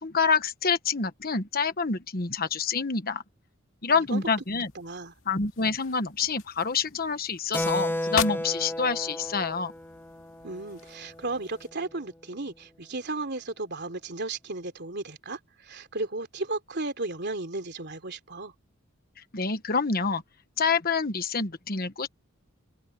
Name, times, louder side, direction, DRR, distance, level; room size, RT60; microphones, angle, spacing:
voice 1, 0.0-3.2 3.8-4.7 5.3-9.7 19.3-20.2 20.6-22.1, left 5 dB, 45° left, 1.3 m, -27 dB
voice 2, 3.9-4.2 4.7-5.1 10.4-18.5, right 2 dB, 50° right, 3.4 m, -35 dB
sound 1, 4.1-11.7, left 6 dB, 65° left, 2.4 m, -41 dB
Keyboard (musical), 7.5-11.6, left 1 dB, 10° left, 0.8 m, -33 dB
open air
head